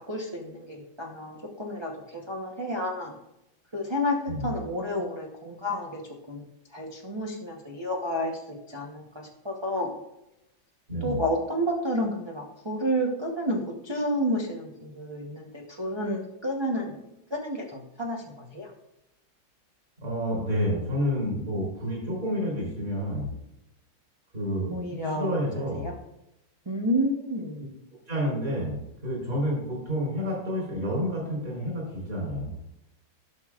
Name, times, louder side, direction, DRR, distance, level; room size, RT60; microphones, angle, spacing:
voice 1, 0.1-3.1 3.7-4.2 4.4-6.0 6.3-6.4 6.7-9.9 11.0-17.0 17.3-18.7 24.7-25.3 25.6-25.9 26.7-27.6, equal, 25° right, -2 dB, 0.5 m, -30 dB
voice 2, 10.9-11.2 20.0-23.3 24.3-25.9 28.1-32.7, equal, 40° right, -4 dB, 3.9 m, -29 dB
12.5 x 6.3 x 2.4 m, 0.88 s
omnidirectional pair, 2.1 m